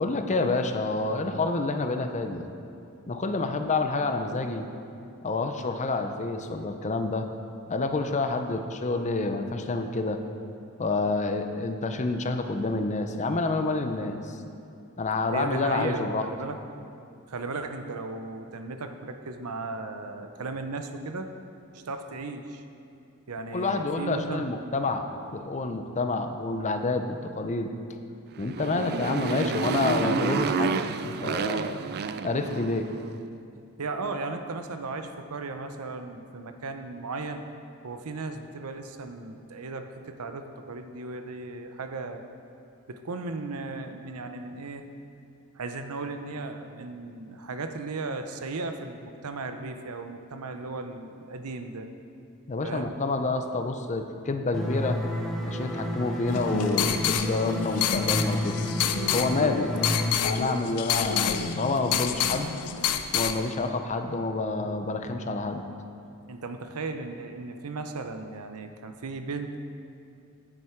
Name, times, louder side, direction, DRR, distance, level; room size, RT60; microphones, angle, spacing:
voice 1, 0.0-2.4 3.1-4.7 5.2-7.3 7.7-10.2 10.8-14.4 15.0-16.3 23.5-25.0 25.3-27.7 28.4-31.8 32.2-32.9 52.5-55.0 55.4-58.6 59.1-59.8 60.2-62.5 63.1-65.6, left 3 dB, 30° left, 6 dB, 0.5 m, -28 dB
voice 2, 15.3-16.6 17.3-21.3 21.7-22.6 23.3-24.5 33.8-37.4 37.8-42.2 42.9-44.9 45.5-51.9 52.6-52.9 66.3-69.6, right 3 dB, 80° right, 7 dB, 0.7 m, -36 dB
Motorcycle, 28.3-32.9, right 5 dB, 45° right, 0.3 m, -29 dB
sound 1, 54.5-60.1, equal, ahead, 0.9 m, -31 dB
sound 2, 56.3-63.4, left 8 dB, 85° left, 0.5 m, -28 dB
9.3 x 9.0 x 4.5 m, 2.6 s
head